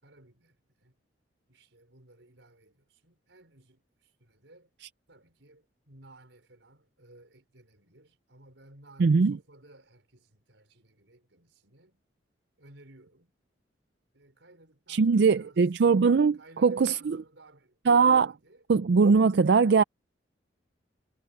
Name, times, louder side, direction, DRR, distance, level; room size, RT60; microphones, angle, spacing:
voice 1, 0.0-1.0 1.5-4.7 5.1-12.0 12.6-13.3 14.1-15.6 16.3-18.7, right 2 dB, 85° right, 5.0 m, -57 dB
voice 2, 9.0-9.4 14.9-17.2 17.9-18.3 18.7-19.8, right 5 dB, 65° right, 0.4 m, -21 dB
head